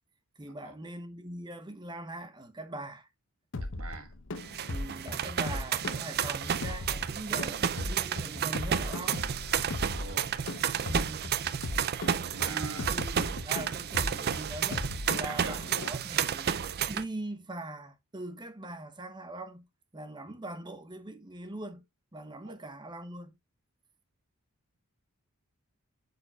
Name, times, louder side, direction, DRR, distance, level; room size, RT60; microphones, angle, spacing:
voice 1, 0.4-3.1 4.7-9.2 10.9-11.4 12.5-16.5 16.9-19.7 19.9-21.8 22.1-23.3, right 2 dB, 20° right, 0.9 m, -41 dB
sound 1, 3.5-15.9, left 2 dB, 60° left, 0.9 m, -38 dB
voice 2, 3.8-4.1 4.6-4.7 9.8-10.4 12.3-12.9 15.2-15.5 20.2-20.3 22.4-22.5, right 4 dB, 70° right, 1.5 m, -43 dB
sound 2, 4.4-17.0, right 8 dB, 45° right, 0.4 m, -32 dB
8.6 x 6.8 x 2.4 m
head